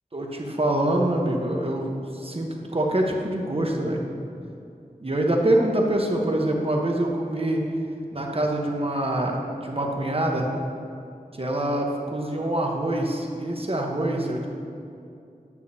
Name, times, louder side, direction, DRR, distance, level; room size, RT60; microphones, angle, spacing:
voice 1, 0.1-4.0 5.0-7.6 8.1-10.4 11.4-14.5, right 1 dB, 40° right, 0 dB, 1.1 m, -25 dB
9.5 x 8.8 x 2.8 m, 2.6 s
wide cardioid pair, 60°, 15 cm